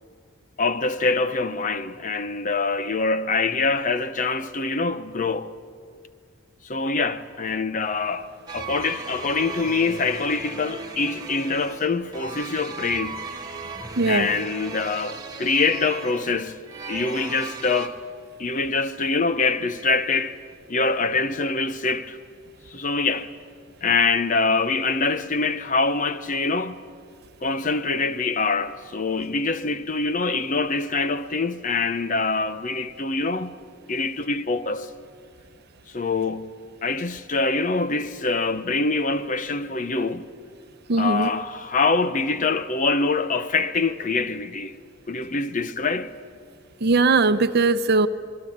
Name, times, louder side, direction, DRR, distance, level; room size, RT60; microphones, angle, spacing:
voice 1, 0.6-5.5 6.6-13.2 14.1-16.6 16.9-18.0 18.4-20.4 20.7-22.2 22.7-23.3 23.8-26.8 27.4-33.6 33.9-34.9 35.9-36.5 36.8-40.3 41.0-44.8 45.1-46.1, left 3 dB, 35° left, 0.8 m, -24 dB
sound 1, 8.5-17.9, right 4 dB, 20° right, 1.9 m, -36 dB
voice 2, 13.9-14.3 40.9-41.3 46.8-48.1, right 3 dB, 50° right, 0.8 m, -19 dB
25.5 x 22.5 x 8.7 m
head